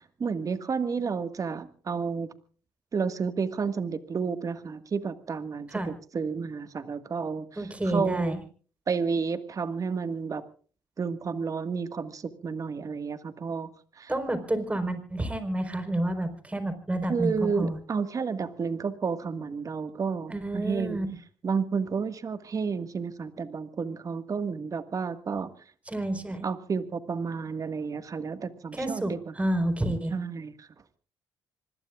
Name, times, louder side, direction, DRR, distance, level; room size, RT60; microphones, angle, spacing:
voice 1, 0.2-2.3 2.9-7.5 7.9-8.4 8.9-10.4 11.0-13.7 14.0-14.1 17.1-21.0 21.4-25.5 26.4-29.3 30.1-30.7, right 5 dB, 45° right, 10 dB, 1.8 m, -31 dB
voice 2, 7.6-8.4 14.1-17.8 20.3-21.1 25.9-26.5 28.7-30.1, right 1 dB, 15° right, 8 dB, 4.5 m, -29 dB
26.5 x 20.5 x 2.5 m, 0.41 s
supercardioid pair, 70°, 8 cm